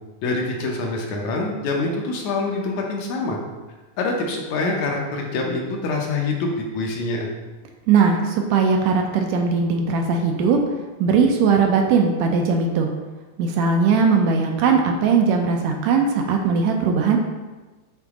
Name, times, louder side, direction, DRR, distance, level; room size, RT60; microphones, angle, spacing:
voice 1, 0.2-3.4 4.0-7.3, left 3 dB, 70° left, 0 dB, 2.0 m, -25 dB
voice 2, 7.9-10.6 11.0-12.9 13.4-17.2, right 5 dB, 80° right, 3 dB, 1.7 m, -19 dB
8.8 x 3.8 x 3.6 m, 1.2 s
omnidirectional pair, 3.7 m